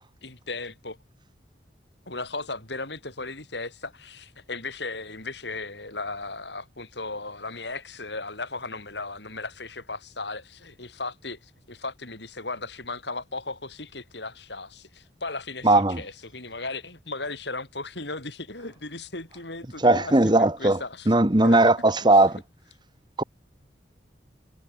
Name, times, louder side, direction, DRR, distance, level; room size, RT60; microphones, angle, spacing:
voice 1, 0.2-1.0 2.1-21.1 21.4-21.6 22.1-22.2, left 3 dB, 65° left, 7.5 m, -36 dB
voice 2, 15.6-16.0 19.8-20.8 21.1-22.4 23.2-23.3, right 2 dB, 25° right, 1.4 m, -18 dB
head